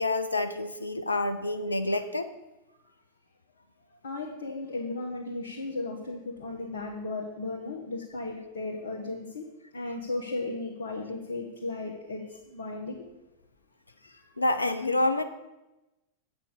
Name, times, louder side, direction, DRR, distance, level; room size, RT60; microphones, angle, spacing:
voice 1, 0.0-2.3 14.4-15.2, left 2 dB, 80° left, 10 dB, 0.5 m, -27 dB
voice 2, 4.0-9.4 9.7-13.0, left 2 dB, 65° left, -2 dB, 1.3 m, -35 dB
8.4 x 5.8 x 6.7 m, 1.0 s
figure-of-eight pair, 90°, 0 cm